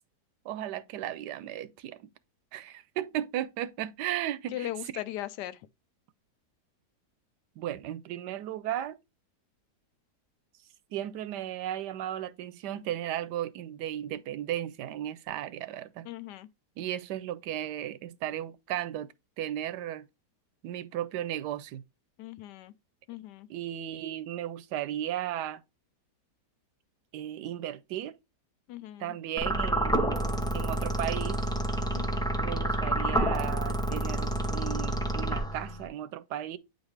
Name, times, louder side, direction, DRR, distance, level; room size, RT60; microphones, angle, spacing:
voice 1, 0.4-2.1 2.5-4.7 7.6-9.0 10.9-16.1 16.8-19.1 19.4-20.1 20.6-21.8 23.5-25.6 27.1-28.1 29.0-30.2 30.5-31.5 32.4-36.6, right 12 dB, 85° right, 1.2 m, -35 dB
voice 2, 4.5-5.6 16.1-16.5 22.2-22.7 23.1-23.5 28.7-29.1 31.9-32.4, left 13 dB, 85° left, 1.2 m, -39 dB
sound 1, 29.4-35.9, right 1 dB, 5° left, 0.3 m, -29 dB
8.8 x 4.0 x 3.2 m
omnidirectional pair, 1.8 m